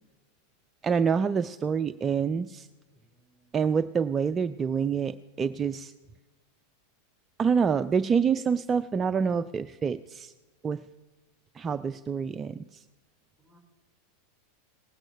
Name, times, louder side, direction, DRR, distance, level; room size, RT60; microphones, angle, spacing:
voice 1, 0.8-2.7 3.5-5.9 7.4-10.3 10.6-10.8 11.5-12.8, right 6 dB, 25° right, 11 dB, 0.4 m, -27 dB
voice 2, 2.9-3.8 13.4-13.6, right 1 dB, 10° left, 2 dB, 3.1 m, -64 dB
19.0 x 8.9 x 5.5 m, 1.2 s
figure-of-eight pair, 90°, 0 cm